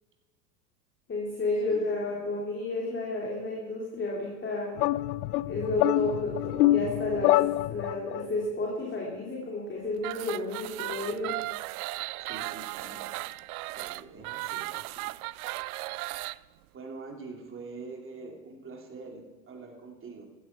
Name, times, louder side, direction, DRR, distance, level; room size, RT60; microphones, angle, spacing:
voice 1, 1.1-4.8 5.4-7.4 7.7-11.4, left 2 dB, 25° left, -3 dB, 3.2 m, -31 dB
voice 2, 1.6-2.4 12.2-13.3 13.7-15.1 16.7-20.3, right 3 dB, 25° right, 1 dB, 3.1 m, -45 dB
sound 1, 4.8-8.2, left 16 dB, 65° left, 0.5 m, -26 dB
sound 2, 10.0-16.4, right 20 dB, 60° right, 0.5 m, -36 dB
15.0 x 14.0 x 4.6 m, 1.4 s
hypercardioid pair, 95°, 50 cm